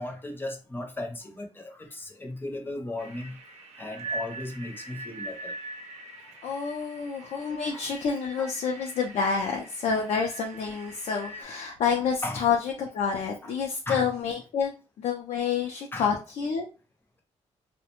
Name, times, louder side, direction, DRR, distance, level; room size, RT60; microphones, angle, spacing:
voice 1, 0.0-3.3 3.8-5.5 7.7-7.8 8.4-8.5 12.2-12.5 13.4-13.5 13.9-14.1 15.9-16.1, left 2 dB, 20° left, 0.6 m, -36 dB
sound 1, 3.0-11.4, right 2 dB, 75° right, 0.6 m, -42 dB
voice 2, 6.4-14.7 15.0-16.7, left 6 dB, 65° left, 0.5 m, -28 dB
2.4 x 2.1 x 2.9 m
cardioid pair, 100°, 11 cm